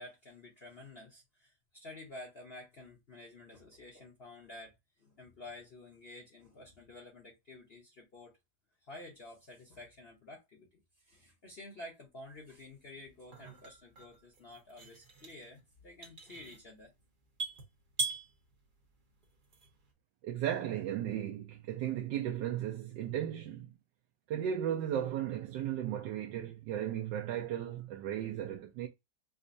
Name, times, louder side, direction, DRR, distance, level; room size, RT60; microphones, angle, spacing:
voice 1, 0.0-8.3 8.9-16.9, left 2 dB, 45° left, 0.9 m, -51 dB
sound 1, 12.4-19.9, right 3 dB, 40° right, 0.7 m, -43 dB
voice 2, 20.2-23.7 24.3-28.9, right 10 dB, 90° right, 1.3 m, -35 dB
5.0 x 2.1 x 2.6 m
omnidirectional pair, 1.9 m